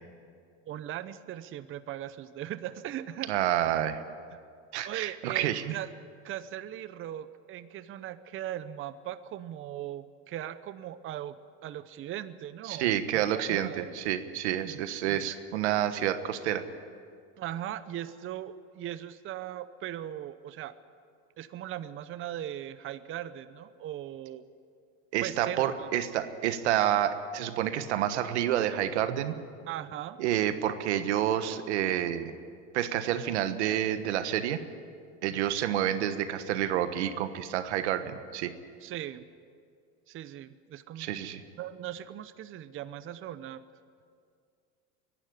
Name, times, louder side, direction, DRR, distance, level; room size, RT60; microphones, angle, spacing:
voice 1, 0.7-3.3 4.3-4.4 4.8-5.9 6.2-11.4 11.6-13.9 14.6-15.3 17.4-20.7 21.4-24.4 25.2-25.9 29.7-30.2 38.8-39.3 40.1-41.1 41.6-43.6, right 12 dB, 40° right, 14 dB, 0.8 m, -39 dB
voice 2, 3.3-4.0 4.7-5.7 12.6-16.6 25.1-29.3 30.2-32.3 32.7-34.6 35.2-38.5 41.0-41.4, right 11 dB, 90° right, 11 dB, 1.4 m, -29 dB
22.5 x 12.0 x 10.0 m, 2.2 s
supercardioid pair, 110°, 33 cm